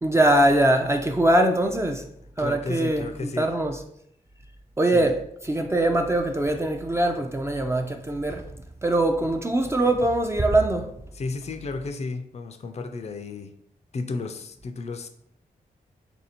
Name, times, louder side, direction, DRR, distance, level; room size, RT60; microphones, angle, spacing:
voice 1, 0.0-2.0 2.4-3.8 4.8-5.2 5.4-8.4 8.8-10.9, right 1 dB, 15° right, 0.4 m, -22 dB
voice 2, 2.4-3.5 4.9-5.1 11.1-13.5 13.9-15.1, left 3 dB, 45° left, 0.4 m, -33 dB
3.3 x 2.6 x 4.3 m
cardioid pair, 55°, 16 cm